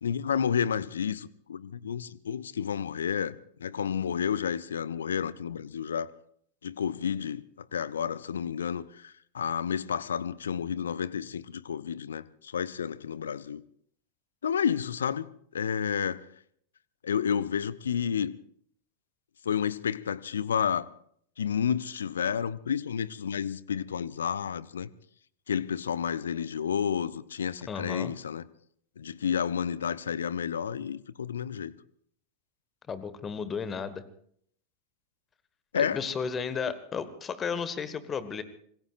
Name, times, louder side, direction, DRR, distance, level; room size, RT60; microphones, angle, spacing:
voice 1, 0.0-6.1 6.6-13.6 14.4-15.3 15.5-16.3 17.0-18.4 19.4-20.9 21.4-24.9 25.5-28.4 29.0-31.7 35.7-36.0, left 7 dB, 65° left, 0.7 m, -31 dB
voice 2, 27.7-28.1 32.9-34.0 35.7-38.4, left 6 dB, 20° left, 1.5 m, -33 dB
26.5 x 20.5 x 2.5 m
figure-of-eight pair, 90°, 0 cm